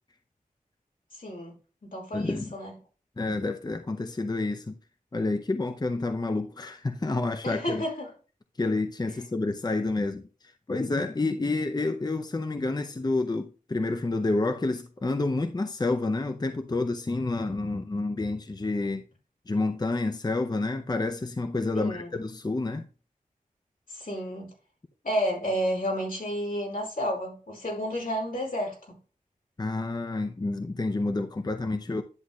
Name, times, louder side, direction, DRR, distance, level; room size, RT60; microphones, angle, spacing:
voice 1, 1.1-1.5 1.8-2.7 7.4-8.1 21.7-22.1 23.9-24.5 25.0-29.0, equal, 80° left, 4.8 m, -31 dB
voice 2, 2.1-2.5 3.2-4.7 5.1-7.8 8.6-10.2 10.7-19.0 19.5-22.8 29.6-32.0, left 2 dB, 30° left, 0.6 m, -29 dB
10.5 x 7.8 x 2.4 m
wide cardioid pair, 70°, 14 cm